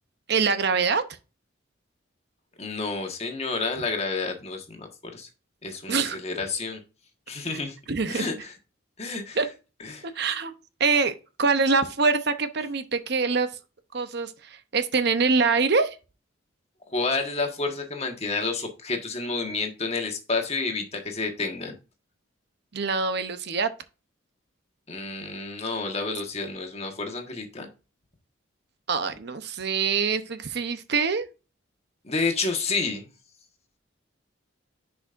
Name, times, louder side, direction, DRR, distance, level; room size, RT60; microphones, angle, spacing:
voice 1, 0.3-1.0 5.9-6.2 7.5-7.6 7.9-8.3 9.4-9.5 10.0-13.5 13.9-16.0 22.7-23.7 28.9-31.3, right 4 dB, 55° right, 0.7 m, -24 dB
voice 2, 2.6-5.3 5.6-6.8 7.3-7.8 8.1-8.5 9.0-9.4 9.8-10.0 16.9-21.7 24.9-27.7 32.0-33.1, left 3 dB, 30° left, 1.5 m, -30 dB
10.5 x 5.1 x 2.5 m
head